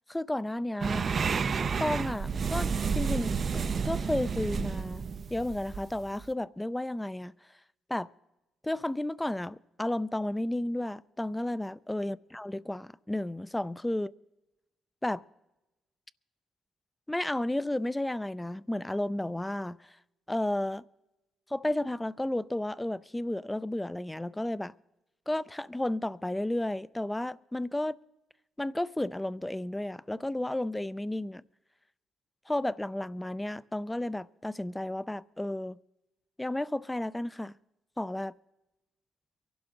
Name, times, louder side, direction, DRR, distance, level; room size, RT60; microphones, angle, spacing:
voice 1, 0.1-1.1 1.8-3.3 3.8-5.0 5.3-7.3 7.9-8.1 8.6-14.1 15.0-15.2 17.1-19.8 20.3-20.8 21.5-24.7 25.3-28.0 28.6-31.4 32.5-35.8 36.4-37.5 38.0-38.3, left 1 dB, 10° left, 0.4 m, -32 dB
sound 1, 0.8-6.3, right 5 dB, 45° right, 0.5 m, -31 dB
23.0 x 12.0 x 3.8 m
cardioid pair, 90°, 0 cm